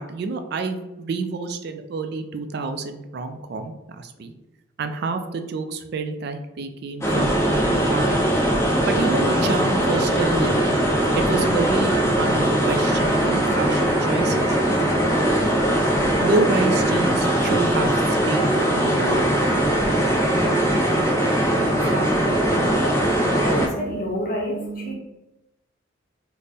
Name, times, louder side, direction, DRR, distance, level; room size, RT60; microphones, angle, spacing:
voice 1, 0.0-4.3 4.8-8.2 8.9-10.6 11.1-14.6 16.2-19.3 19.8-20.0, right 3 dB, 55° right, 7 dB, 0.3 m, -28 dB
sound 1, 7.0-23.7, right 1 dB, 15° left, 0.7 m, -20 dB
voice 2, 21.7-24.9, equal, 45° left, -1 dB, 0.9 m, -30 dB
3.4 x 2.0 x 4.0 m, 0.96 s
head